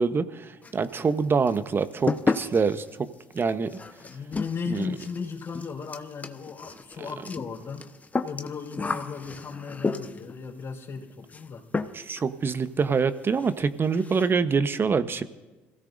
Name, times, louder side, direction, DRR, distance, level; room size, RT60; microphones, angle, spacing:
voice 1, 0.0-3.1 3.3-3.7 4.7-4.9 11.9-15.2, right 5 dB, 35° right, 12 dB, 1.0 m, -25 dB
sound 1, 0.6-1.2 1.5-10.4 11.3-11.5 11.7-12.2 12.5-12.6 13.0-13.1 13.3-13.5 13.8-14.3, left 3 dB, 25° left, 1.0 m, -32 dB
voice 2, 4.0-7.9 8.2-11.7, left 5 dB, 50° left, -4 dB, 3.9 m, -36 dB
26.0 x 16.5 x 2.6 m, 1.2 s
hypercardioid pair, 60°, 7 cm